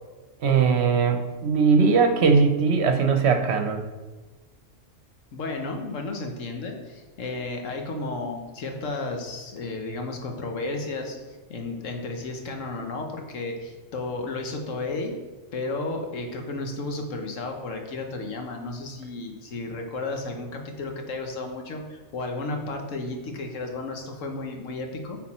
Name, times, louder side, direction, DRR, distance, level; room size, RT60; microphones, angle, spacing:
voice 1, 0.4-3.8, right 5 dB, 60° right, 6 dB, 0.9 m, -20 dB
voice 2, 5.3-15.1 15.5-25.2, left 2 dB, 75° left, 3 dB, 1.4 m, -33 dB
8.5 x 4.1 x 4.2 m, 1.2 s
omnidirectional pair, 1.3 m